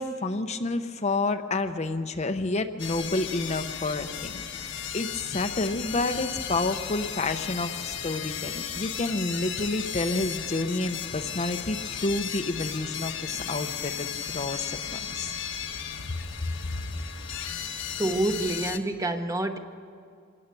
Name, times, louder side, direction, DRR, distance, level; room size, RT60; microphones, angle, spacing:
voice 1, 0.0-15.3, left 2 dB, 35° left, 7 dB, 0.8 m, -29 dB
sound 1, 2.8-18.8, left 8 dB, 65° left, 1.3 m, -35 dB
voice 2, 18.0-19.6, right 2 dB, 15° right, 6 dB, 1.0 m, -27 dB
25.0 x 19.5 x 6.9 m, 2.3 s
head